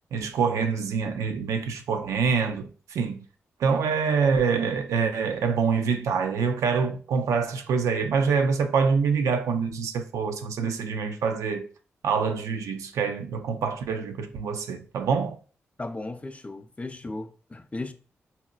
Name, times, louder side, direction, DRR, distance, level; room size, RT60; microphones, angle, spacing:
voice 1, 0.1-3.2 3.6-11.7 12.0-15.4, right 5 dB, 75° right, 0.4 m, -25 dB
voice 2, 15.8-17.9, left 2 dB, 25° left, 0.4 m, -36 dB
4.0 x 2.1 x 2.4 m
supercardioid pair, 40°, 5 cm